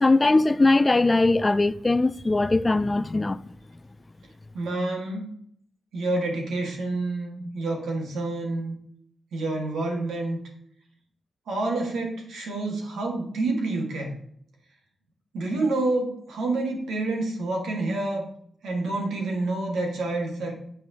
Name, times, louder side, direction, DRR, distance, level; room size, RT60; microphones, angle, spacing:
voice 1, 0.0-3.4, left 2 dB, 25° left, 0.3 m, -20 dB
voice 2, 4.5-5.3 5.9-8.8 9.3-10.4 11.5-14.1 15.3-18.2 18.6-20.5, right 2 dB, 90° right, 1.8 m, -28 dB
8.5 x 7.2 x 2.9 m
cardioid pair, 65°, 0 cm